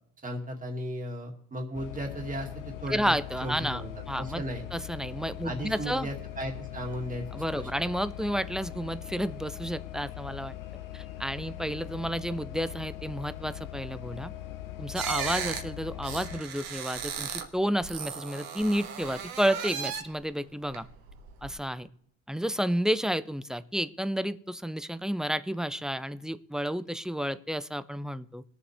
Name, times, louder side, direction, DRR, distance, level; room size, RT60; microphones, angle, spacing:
voice 1, 0.2-3.1 3.4-3.9 4.2-4.6 5.4-7.7, equal, 25° right, 1 dB, 2.3 m, -36 dB
sound 1, 1.7-16.4, left 13 dB, 65° left, 0.9 m, -41 dB
voice 2, 2.9-4.4 4.7-6.1 7.3-10.6 10.9-14.3 14.8-20.9 21.4-21.9 22.3-28.4, equal, ahead, 14 dB, 0.3 m, -31 dB
sound 2, 14.9-17.5 17.8-20.2 20.7-21.5, right 8 dB, 80° right, 1.7 m, -36 dB
21.0 x 7.2 x 3.4 m, 0.68 s
cardioid pair, 120°, 35 cm